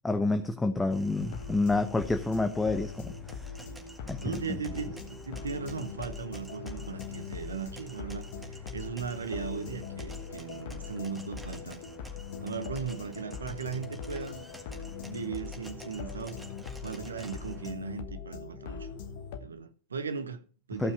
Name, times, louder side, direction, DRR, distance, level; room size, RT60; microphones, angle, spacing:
voice 1, 0.0-3.5 4.1-4.4 20.8-20.9, left 2 dB, 10° left, 0.8 m, -29 dB
sound 1, 0.9-17.7, right 1 dB, 5° right, 2.0 m, -51 dB
sound 2, 1.2-19.4, left 6 dB, 55° left, 1.3 m, -41 dB
voice 2, 4.2-11.8 12.4-14.4 15.1-16.4 16.8-18.9 19.4-20.9, right 6 dB, 75° right, 1.0 m, -38 dB
15.0 x 5.7 x 4.7 m
figure-of-eight pair, 85°, 0 cm